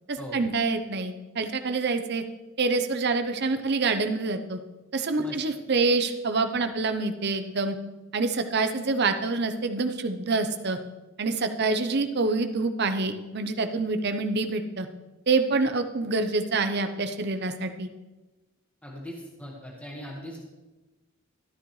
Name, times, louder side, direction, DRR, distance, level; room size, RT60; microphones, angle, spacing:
voice 1, 0.1-2.2 2.6-4.6 4.9-7.8 8.1-10.8 11.2-14.9 15.3-17.9, right 3 dB, 50° right, 8 dB, 0.7 m, -26 dB
voice 2, 18.8-20.4, equal, 5° left, -2 dB, 1.5 m, -40 dB
13.0 x 9.8 x 3.2 m, 1.1 s
head